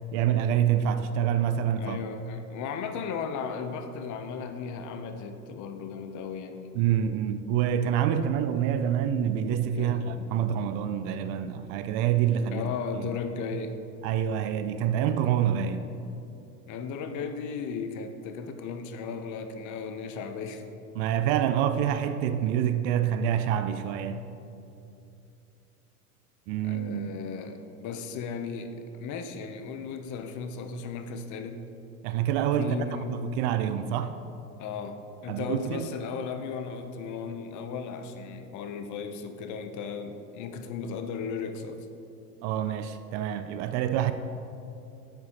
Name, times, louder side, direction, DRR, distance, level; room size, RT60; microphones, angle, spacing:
voice 1, 0.1-2.0 6.7-12.7 12.9-13.1 14.0-15.9 20.9-24.2 26.5-27.1 32.0-34.1 35.3-35.9 42.4-44.1, right 9 dB, 50° right, 0.5 m, -27 dB
voice 2, 1.8-6.7 9.7-10.1 12.5-13.8 16.7-20.7 26.6-31.6 32.6-33.1 34.6-41.9, left 5 dB, 40° left, 0.7 m, -36 dB
10.0 x 7.5 x 2.9 m
hypercardioid pair, 95°, 47 cm